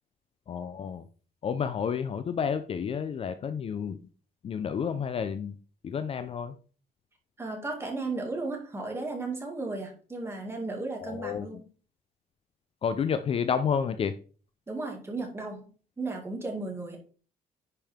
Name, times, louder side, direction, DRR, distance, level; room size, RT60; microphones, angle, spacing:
voice 1, 0.5-1.0 1.4-4.0 4.4-5.5 5.8-6.5 11.0-11.6 12.8-14.1, left 7 dB, 35° left, 10 dB, 0.5 m, -30 dB
voice 2, 7.4-11.6 14.7-15.7 16.0-17.0, right 3 dB, 15° right, 1 dB, 2.2 m, -35 dB
10.5 x 5.3 x 3.6 m, 0.40 s
cardioid pair, 155°, 16 cm